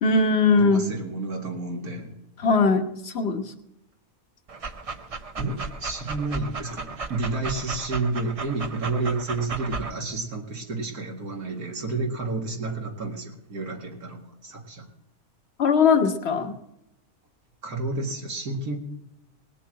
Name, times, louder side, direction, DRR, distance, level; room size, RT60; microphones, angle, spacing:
voice 1, 0.0-0.8 2.4-3.5 15.6-16.5, left 4 dB, 45° left, 6 dB, 1.3 m, -20 dB
voice 2, 0.6-2.1 5.4-14.9 17.6-18.8, right 3 dB, 80° right, 1 dB, 2.4 m, -30 dB
Dog, 4.5-9.9, right 4 dB, 45° right, 0.5 m, -35 dB
19.5 x 6.9 x 7.6 m, 0.87 s
omnidirectional pair, 1.6 m